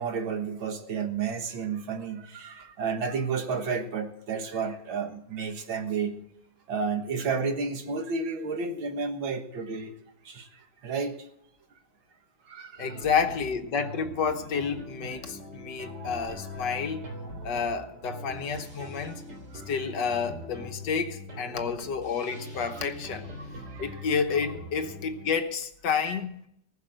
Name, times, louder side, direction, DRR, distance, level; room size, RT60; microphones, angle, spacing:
voice 1, 0.0-6.2 6.7-9.9 10.2-11.2 12.5-13.0 15.9-16.1 17.5-17.7 19.5-19.7 23.4-24.1 25.9-26.2, right 5 dB, 85° right, 2.2 m, -32 dB
voice 2, 12.8-17.0 17.4-19.2 19.7-23.3 23.8-26.5, left 6 dB, 65° left, 1.7 m, -30 dB
sound 1, 12.8-25.3, left 1 dB, 60° right, 4.0 m, -42 dB
19.5 x 6.5 x 7.8 m
omnidirectional pair, 2.1 m